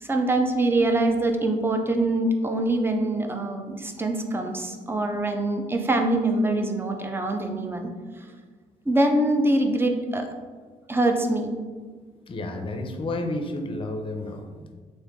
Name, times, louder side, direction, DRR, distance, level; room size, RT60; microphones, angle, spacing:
voice 1, 0.0-7.9 8.9-10.3 10.9-11.5, right 1 dB, 15° right, 4 dB, 0.5 m, -24 dB
voice 2, 12.3-14.4, left 2 dB, 35° left, 5 dB, 0.6 m, -31 dB
3.3 x 2.6 x 3.7 m, 1.5 s
supercardioid pair, 70°, 15 cm